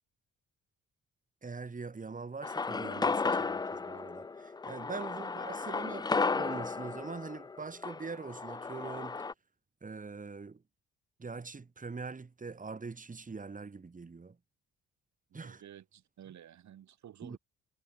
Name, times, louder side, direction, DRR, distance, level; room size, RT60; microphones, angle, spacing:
voice 1, 1.4-9.2 9.8-10.6 11.2-14.4 15.3-15.6 17.2-17.4, right 4 dB, 25° right, 3.2 m, -43 dB
sound 1, 2.4-9.3, left 4 dB, 15° left, 0.4 m, -34 dB
voice 2, 15.3-17.4, right 10 dB, 70° right, 7.5 m, -52 dB
cardioid pair, 90°, 30 cm